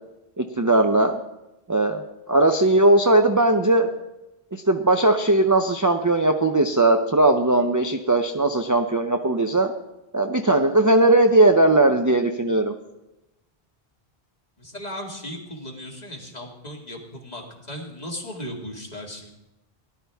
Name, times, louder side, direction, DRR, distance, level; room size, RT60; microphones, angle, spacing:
voice 1, 0.4-1.2 1.7-3.9 4.7-9.7 10.1-12.7, right 2 dB, 20° right, 4 dB, 0.6 m, -19 dB
voice 2, 14.6-19.3, equal, 40° left, 0 dB, 2.2 m, -36 dB
18.0 x 11.5 x 3.5 m, 0.95 s
omnidirectional pair, 1.1 m